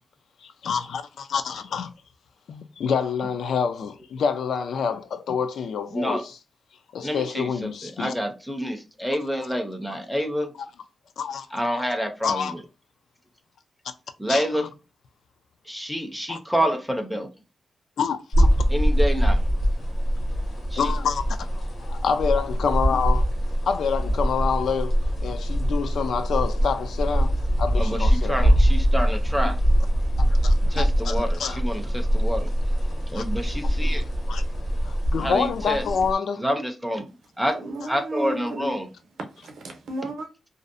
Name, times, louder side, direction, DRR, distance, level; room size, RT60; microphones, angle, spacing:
voice 1, 0.4-1.9 2.5-6.4 6.9-8.1 11.2-11.5 11.7-11.8 12.2-12.5 14.3-14.7 16.3-16.4 18.0-18.5 20.8-23.3 23.7-28.6 30.2-31.6 33.1-33.2 34.3-34.4 34.8-36.5, left 6 dB, 80° left, 0.3 m, -27 dB
voice 2, 7.0-7.5 8.0-10.5 11.5-12.6 14.2-14.6 15.7-17.3 18.7-19.4 20.7-20.8 27.8-29.6 30.7-32.5 33.1-34.0 35.2-35.8 36.4-37.0 37.4-37.5 37.9-38.9, equal, 5° left, 0.4 m, -27 dB
sound 1, 18.3-36.1, equal, 55° left, 0.8 m, -23 dB
voice 3, 37.5-38.8 39.4-40.3, right 1 dB, 70° right, 0.6 m, -33 dB
2.5 x 2.0 x 2.4 m
wide cardioid pair, 160°, 0 cm